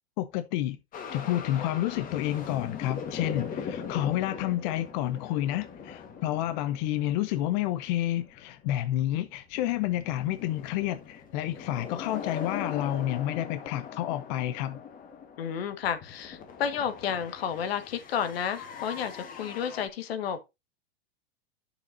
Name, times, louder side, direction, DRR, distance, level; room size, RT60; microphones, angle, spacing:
voice 1, 0.2-0.8 1.1-14.8, left 13 dB, 45° left, 0.7 m, -30 dB
sound 1, 0.9-8.8 9.1-19.9, left 6 dB, 25° left, 1.6 m, -41 dB
voice 2, 15.4-20.5, left 8 dB, 75° left, 1.7 m, -31 dB
9.6 x 6.9 x 2.7 m
hypercardioid pair, 130°, 31 cm